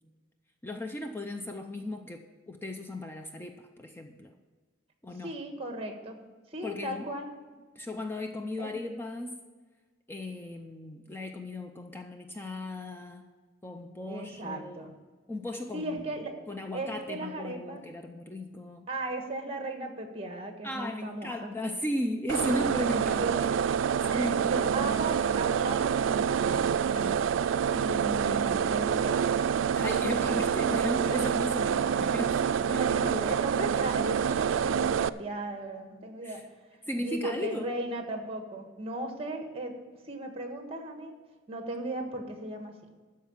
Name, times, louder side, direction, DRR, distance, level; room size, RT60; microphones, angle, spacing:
voice 1, 0.6-4.3 5.0-5.3 6.6-7.1 7.8-9.4 10.1-13.2 13.6-14.8 15.3-16.2 16.5-18.9 20.6-23.3 24.1-24.3 27.7-28.4 29.7-32.8 33.1-33.2 36.2-36.4 36.9-37.7, left 1 dB, 10° left, 4 dB, 0.6 m, -36 dB
voice 2, 5.2-6.2 6.5-7.3 8.6-8.7 14.1-14.9 15.7-16.4 16.7-17.8 18.9-21.5 23.1-23.5 24.1-27.3 28.2-29.4 32.8-36.5 37.0-39.7 40.0-41.2 41.5-42.8, right 1 dB, 30° right, 4 dB, 1.5 m, -36 dB
sound 1, 22.3-35.1, right 7 dB, 85° right, 0.4 m, -27 dB
13.0 x 4.8 x 8.7 m, 1.4 s
head